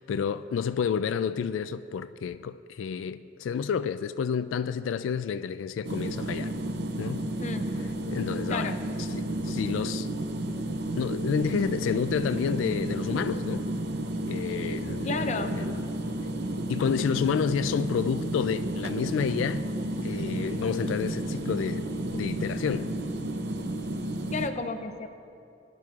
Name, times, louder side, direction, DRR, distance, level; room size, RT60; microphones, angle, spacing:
voice 1, 0.0-6.5 7.0-7.2 8.1-10.1 11.0-13.6 14.3-15.7 16.7-19.7 20.0-22.9, left 7 dB, 85° left, 0.3 m, -30 dB
sound 1, 5.8-24.5, right 1 dB, 55° right, 0.6 m, -32 dB
voice 2, 15.0-15.6 24.3-25.1, left 3 dB, 35° left, 0.5 m, -32 dB
20.0 x 11.0 x 2.5 m
head